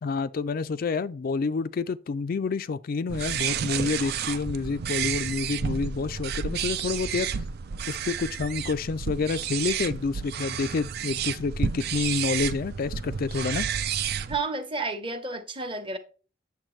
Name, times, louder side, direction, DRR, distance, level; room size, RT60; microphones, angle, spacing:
voice 1, 0.0-7.3 7.9-13.7, left 4 dB, 45° left, 0.4 m, -28 dB
sound 1, 3.1-14.4, right 7 dB, 50° right, 0.4 m, -31 dB
voice 2, 14.3-16.0, right 3 dB, 25° right, 1.0 m, -31 dB
9.0 x 7.0 x 3.1 m
head